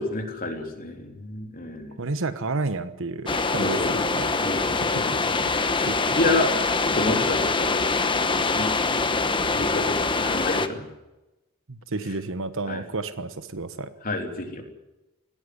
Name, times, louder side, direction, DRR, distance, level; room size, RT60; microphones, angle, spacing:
voice 1, 0.0-1.9 3.6-4.0 4.4-5.1 5.7-5.9 6.2-6.5 6.8-7.8 8.5-8.7 9.5-10.9 12.7-12.8 14.0-14.6, left 2 dB, 40° left, 3 dB, 3.5 m, -29 dB
voice 2, 2.0-4.5 4.8-5.2 5.4-6.3 11.7-13.9, right 3 dB, 65° right, 11 dB, 1.2 m, -31 dB
sound 1, 3.3-10.7, left 3 dB, 25° left, 1.2 m, -24 dB
18.5 x 16.0 x 9.6 m, 1.0 s
head